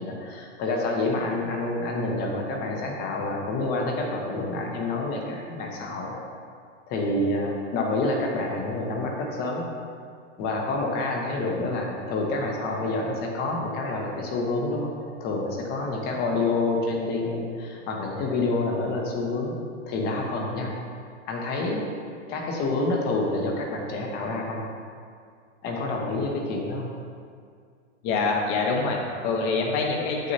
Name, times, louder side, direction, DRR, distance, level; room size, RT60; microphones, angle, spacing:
voice 1, 0.0-6.2 6.9-9.7 10.4-14.9 15.2-19.5 19.9-20.7 21.3-21.8 22.3-24.7 25.6-26.9, left 2 dB, 25° left, 0 dB, 0.9 m, -28 dB
voice 2, 28.0-30.3, left 4 dB, 40° left, 0 dB, 1.1 m, -25 dB
8.1 x 6.4 x 2.8 m, 2.2 s
supercardioid pair, 150°, 37 cm